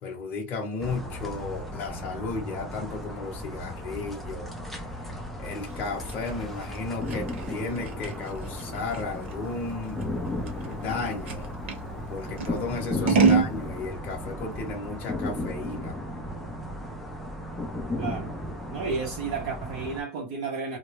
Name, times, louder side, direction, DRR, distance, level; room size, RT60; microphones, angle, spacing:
voice 1, 0.0-4.8 5.4-10.1 10.6-11.6 12.1-16.0, left 3 dB, 30° left, 0.8 m, -34 dB
sound 1, 0.8-20.0, left 1 dB, ahead, 0.3 m, -35 dB
Scissors, 5.7-11.8 12.4-13.5, right 6 dB, 90° right, 0.9 m, -27 dB
voice 2, 13.2-13.6 18.0-18.4 18.7-20.8, right 4 dB, 45° right, 0.7 m, -32 dB
2.2 x 2.0 x 2.9 m
supercardioid pair, 165°, 6 cm